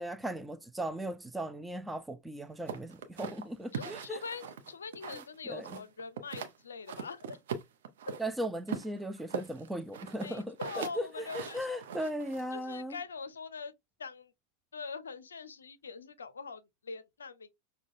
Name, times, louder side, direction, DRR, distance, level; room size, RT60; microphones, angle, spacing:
voice 1, 0.0-4.2 5.1-5.2 5.5-5.8 8.2-13.0, right 1 dB, 5° right, 0.3 m, -37 dB
sound 1, 2.7-5.4 5.6-6.6 6.9-8.2 8.7-12.5, right 7 dB, 60° right, 0.7 m, -41 dB
voice 2, 3.7-7.4 8.1-8.2 10.2-11.8 12.5-13.7 14.0-14.3 14.7-17.5, left 5 dB, 70° left, 0.5 m, -43 dB
6.1 x 2.2 x 2.5 m
figure-of-eight pair, 90°, 0 cm